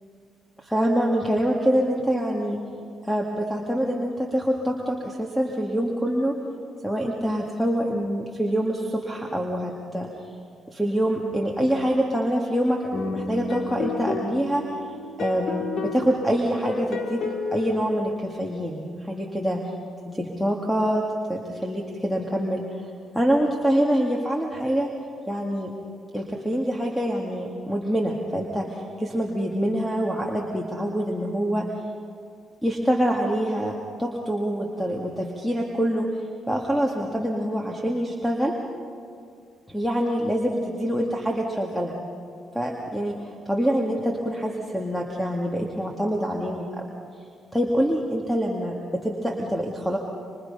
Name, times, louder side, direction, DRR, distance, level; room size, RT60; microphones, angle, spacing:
voice 1, 0.6-2.6 3.0-6.3 6.8-10.1 10.7-12.8 13.1-14.6 15.2-17.2 17.5-19.6 20.2-21.0 21.3-22.9 23.1-24.9 25.3-25.7 26.1-31.7 32.6-36.1 36.5-38.5 39.7-42.0 42.5-43.1 43.5-46.9 47.5-50.0, equal, ahead, 0 dB, 2.2 m, -25 dB
sound 1, 12.9-18.2, left 4 dB, 60° left, 2.3 m, -31 dB
25.5 x 25.0 x 5.6 m, 2.3 s
cardioid pair, 90°, 0 cm